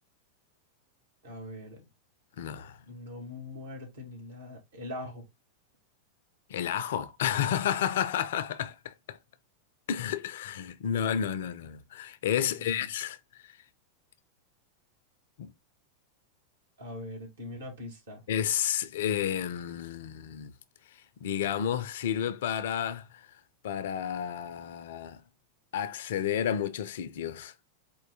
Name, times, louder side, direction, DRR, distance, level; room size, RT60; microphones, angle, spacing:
voice 1, 1.2-1.8 2.9-5.3 12.5-12.9 16.8-18.2, left 1 dB, 65° right, 2.0 m, -42 dB
voice 2, 2.4-2.8 6.5-9.2 9.9-13.2 13.4-13.6 15.4-15.5 18.3-20.5 21.2-23.3 23.6-25.2 25.7-27.5, left 9 dB, 55° left, 0.4 m, -31 dB
4.5 x 2.6 x 3.7 m
figure-of-eight pair, 90°, 0 cm